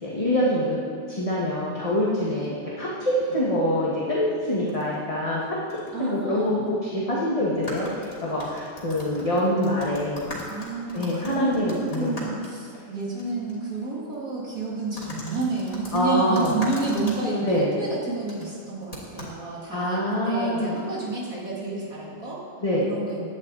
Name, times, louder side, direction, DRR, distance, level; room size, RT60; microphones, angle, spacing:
voice 1, 0.0-0.8 1.1-5.6 6.0-10.3 10.9-12.1 15.9-16.6 17.4-17.7 19.7-20.8 22.6-22.9, equal, 25° left, -6 dB, 1.8 m, -25 dB
voice 2, 2.2-2.6 3.2-3.3 5.9-6.7 10.5-22.4 22.8-23.3, right 3 dB, 75° right, -5 dB, 3.4 m, -30 dB
sound 1, 4.7-5.0 5.7-5.9 6.2-6.3 7.5-13.2 13.5-13.6 15.0-17.2 18.3-18.5 18.9-19.4, left 1 dB, 65° left, 3.5 m, -40 dB
17.0 x 10.5 x 4.1 m, 2.2 s
omnidirectional pair, 1.5 m